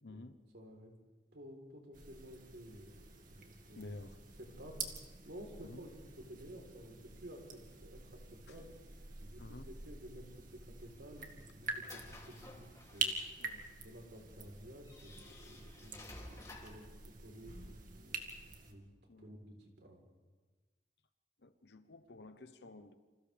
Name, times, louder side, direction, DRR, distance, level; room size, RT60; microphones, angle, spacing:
voice 1, 0.0-0.3 3.7-4.2 5.6-5.8 8.5-8.6 9.4-9.7 13.4-13.8 19.1-19.3 21.4-22.9, left 2 dB, 70° left, 9 dB, 1.1 m, -51 dB
voice 2, 0.5-0.9 1.3-3.1 3.3-3.9 4.4-4.9 5.2-8.8 9.2-13.2 13.8-18.3 18.6-20.0, equal, 70° right, 1 dB, 4.0 m, -53 dB
sound 1, 1.9-18.7, right 4 dB, 50° right, 2.1 m, -46 dB
sound 2, 10.8-13.3 14.1-14.2 14.8-16.9, left 2 dB, 20° left, 2.9 m, -54 dB
29.5 x 27.0 x 3.5 m, 1.3 s
head